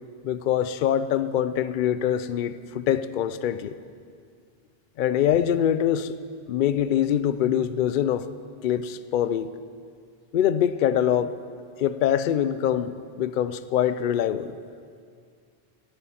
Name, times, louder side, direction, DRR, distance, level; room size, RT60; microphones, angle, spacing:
voice 1, 0.2-3.7 5.0-6.2 6.5-8.3 8.6-9.5 10.3-11.4 11.8-14.6, left 10 dB, 60° left, 13 dB, 0.6 m, -24 dB
17.5 x 8.9 x 5.7 m, 2.2 s
omnidirectional pair, 1.1 m